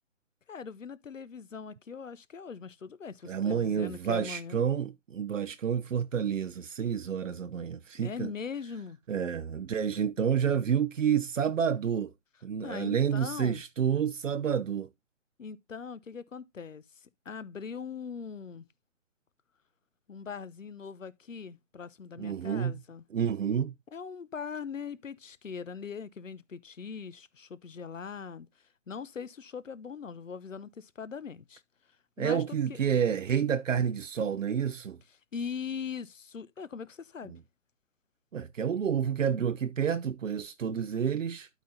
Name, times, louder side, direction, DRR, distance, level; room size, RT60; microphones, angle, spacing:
voice 1, 0.5-4.6 7.9-9.0 12.6-13.6 15.4-18.7 20.1-23.0 23.9-28.5 28.9-31.6 32.2-32.8 35.3-37.3, left 6 dB, 80° left, 1.0 m, -41 dB
voice 2, 3.3-8.3 9.1-12.1 12.4-14.9 22.2-22.7 23.1-23.7 32.2-35.0 38.3-41.5, right 8 dB, 75° right, 0.7 m, -29 dB
12.0 x 4.2 x 4.1 m
figure-of-eight pair, 145°, 38 cm